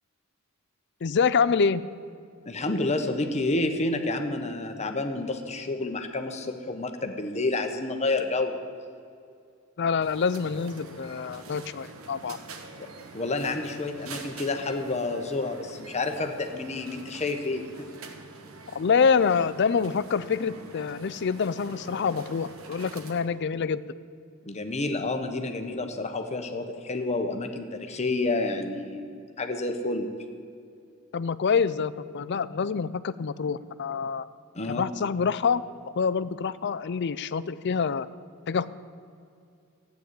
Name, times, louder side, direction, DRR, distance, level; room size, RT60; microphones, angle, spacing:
voice 1, 1.0-1.8 9.8-12.4 18.7-23.8 31.1-34.3 34.7-35.6 36.0-38.1 38.5-38.7, left 5 dB, 55° left, 16 dB, 0.5 m, -26 dB
voice 2, 2.4-8.6 12.8-12.9 13.1-17.9 24.5-30.1 34.5-34.8, left 2 dB, 30° left, 6 dB, 1.1 m, -29 dB
sound 1, 10.0-23.3, right 3 dB, 75° right, 1.3 m, -45 dB
14.0 x 9.3 x 8.3 m, 2.4 s
head